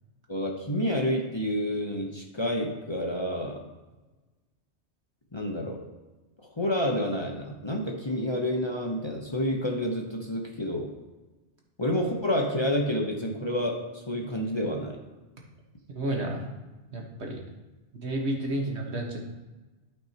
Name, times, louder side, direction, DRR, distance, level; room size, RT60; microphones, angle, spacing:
voice 1, 0.3-3.6 5.3-5.8 6.6-10.9 11.8-15.0, left 1 dB, 25° left, 1 dB, 0.9 m, -29 dB
voice 2, 16.0-16.4 16.9-17.4 18.0-19.2, right 1 dB, 70° right, 0 dB, 1.7 m, -31 dB
12.5 x 5.6 x 2.9 m, 1.2 s
omnidirectional pair, 1.2 m